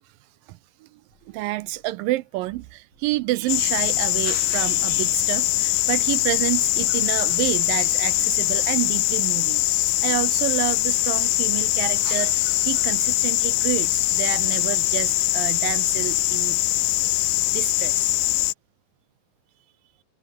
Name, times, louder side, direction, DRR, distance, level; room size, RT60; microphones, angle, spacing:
voice 1, 0.5-1.0 1.3-9.7 10.0-16.6 17.5-18.1, right 18 dB, 80° right, 2.2 m, -29 dB
sound 1, 1.1-11.9, left 3 dB, 30° left, 7.3 m, -61 dB
sound 2, 3.5-18.5, left 19 dB, 80° left, 2.1 m, -22 dB
omnidirectional pair, 4.2 m